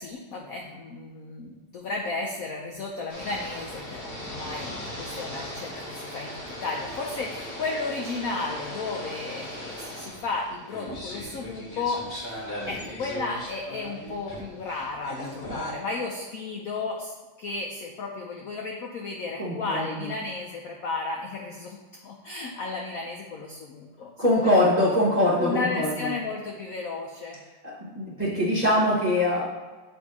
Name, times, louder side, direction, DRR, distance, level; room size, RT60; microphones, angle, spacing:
voice 1, 0.0-17.1 17.4-21.8 22.0-24.1 24.4-24.5 25.4-27.4, left 3 dB, 75° left, 1 dB, 0.8 m, -33 dB
sound 1, 3.1-15.7, equal, 35° left, 1.1 m, -38 dB
voice 2, 19.4-20.1 24.2-26.1 27.6-29.5, left 1 dB, 30° right, -7 dB, 0.7 m, -23 dB
8.1 x 2.7 x 4.7 m, 1.3 s
omnidirectional pair, 2.1 m